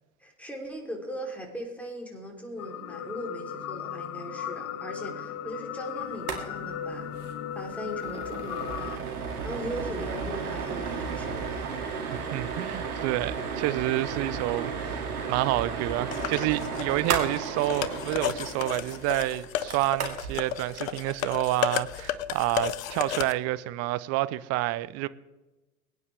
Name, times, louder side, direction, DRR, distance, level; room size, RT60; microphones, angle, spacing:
voice 1, 0.2-7.1 7.5-11.6, equal, 5° left, 3.2 m, -39 dB
sound 1, 2.6-9.0, left 9 dB, 35° left, 0.9 m, -36 dB
sound 2, 6.1-6.4 6.7-6.8 7.1-7.3 7.7-20.4, right 5 dB, 80° right, 2.4 m, -34 dB
voice 2, 12.1-25.1, right 17 dB, 35° right, 0.6 m, -29 dB
sound 3, 16.1-23.3, left 12 dB, 60° left, 0.9 m, -33 dB
23.0 x 9.5 x 3.4 m
figure-of-eight pair, 85°, 44 cm